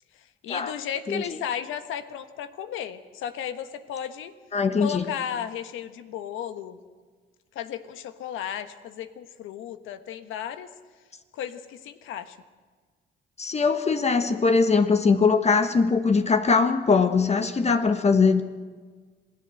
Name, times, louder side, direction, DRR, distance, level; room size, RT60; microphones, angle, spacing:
voice 1, 0.4-4.3 4.8-6.8 7.5-10.7 11.3-12.4, left 9 dB, 90° left, 10 dB, 1.4 m, -34 dB
voice 2, 4.5-5.0 13.4-18.4, left 4 dB, 35° left, 8 dB, 1.3 m, -21 dB
27.0 x 16.5 x 7.8 m, 1.5 s
cardioid pair, 90°, 20 cm